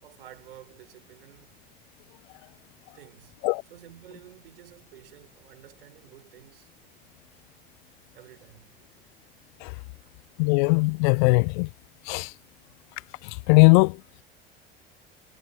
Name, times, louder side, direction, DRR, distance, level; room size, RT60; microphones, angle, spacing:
voice 1, 0.0-1.6 2.9-6.7 8.1-8.8 10.0-10.1, right 13 dB, 70° right, 6.2 m, -51 dB
voice 2, 10.4-11.7 12.1-12.3 13.5-13.9, left 33 dB, 55° left, 0.7 m, -19 dB
figure-of-eight pair, 65°, 30 cm